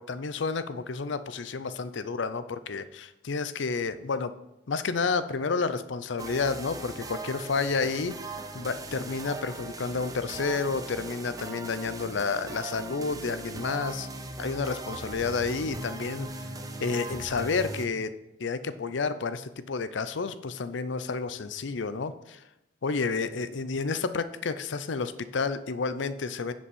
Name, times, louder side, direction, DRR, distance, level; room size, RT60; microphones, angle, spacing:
voice 1, 0.0-4.3 4.7-8.1 8.5-14.1 14.4-16.3 16.8-18.1 18.4-22.4 22.8-26.5, left 4 dB, 70° left, 13 dB, 0.6 m, -30 dB
sound 1, 6.2-17.9, right 2 dB, 20° right, 0.6 m, -39 dB
9.9 x 5.3 x 5.5 m, 0.89 s
head